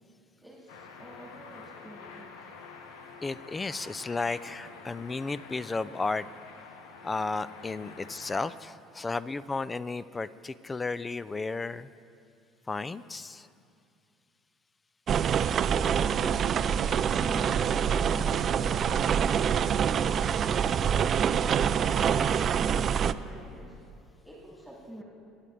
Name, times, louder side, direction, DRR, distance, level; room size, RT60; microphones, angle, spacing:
voice 1, 0.4-2.5 15.7-22.0 22.3-23.8 24.2-25.0, equal, ahead, -3 dB, 2.4 m, -45 dB
sound 1, 0.7-8.5, left 5 dB, 70° left, 1.0 m, -48 dB
voice 2, 3.2-6.3 7.0-11.9 12.7-13.5, left 3 dB, 20° left, 17 dB, 0.4 m, -33 dB
sound 2, 15.1-23.1, right 8 dB, 45° right, 0.4 m, -26 dB
22.5 x 9.7 x 3.4 m, 2.5 s
hypercardioid pair, 65°, 0 cm